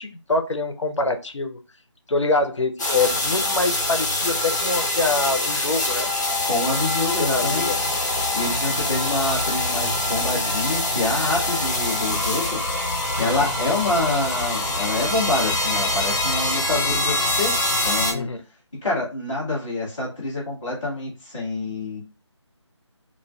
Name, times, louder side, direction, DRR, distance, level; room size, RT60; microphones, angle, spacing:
voice 1, 0.0-1.6 2.1-6.1 7.2-7.7 8.5-8.6 13.2-13.5 18.1-18.4, left 3 dB, 75° left, 6 dB, 0.6 m, -25 dB
sound 1, 2.8-18.1, left 2 dB, 35° left, 0.7 m, -24 dB
voice 2, 6.4-7.7 8.3-17.6 17.8-18.3 18.8-22.0, left 2 dB, 5° left, -13 dB, 0.4 m, -26 dB
2.4 x 2.2 x 3.1 m, 0.31 s
figure-of-eight pair, 160°, 16 cm